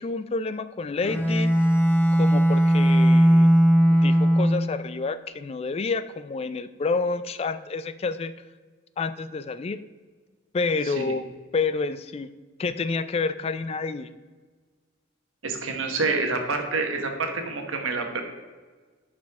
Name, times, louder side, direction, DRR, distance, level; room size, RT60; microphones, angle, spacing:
voice 1, 0.0-1.5 2.1-3.5 3.9-8.3 9.0-9.8 10.5-11.2 11.5-12.3 12.6-14.1, left 4 dB, 30° left, 13 dB, 0.3 m, -29 dB
Bowed string instrument, 1.0-4.8, equal, 10° left, 0.8 m, -18 dB
voice 2, 15.4-18.2, right 3 dB, 80° right, 4 dB, 1.2 m, -27 dB
11.0 x 5.1 x 3.5 m, 1.4 s
head